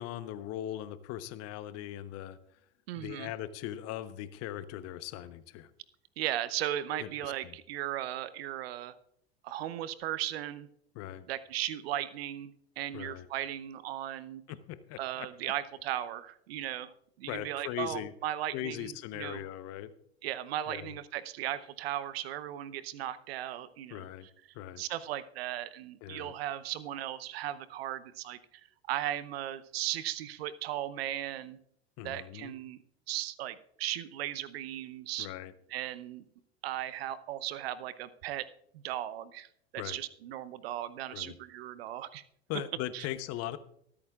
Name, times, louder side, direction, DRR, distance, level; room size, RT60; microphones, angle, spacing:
voice 1, 0.0-2.4 3.0-5.7 7.0-7.6 10.9-11.3 12.9-13.3 14.5-15.5 17.3-18.1 18.5-19.9 20.7-21.0 23.9-24.3 24.5-24.8 26.0-26.3 32.0-32.5 35.2-35.5 39.8-40.0 41.1-41.4 42.5-43.6, left 12 dB, 50° left, 13 dB, 1.0 m, -40 dB
voice 2, 2.9-3.3 6.2-8.9 9.4-10.7 11.3-12.5 12.8-14.4 15.0-19.4 20.2-24.1 24.8-28.4 28.9-31.6 32.0-32.8 33.1-35.3 35.7-36.3 36.6-38.5 38.7-39.5 39.7-42.2 42.9-43.1, right 12 dB, 70° right, 15 dB, 0.8 m, -37 dB
24.0 x 8.6 x 2.4 m, 0.71 s
hypercardioid pair, 85°, 32 cm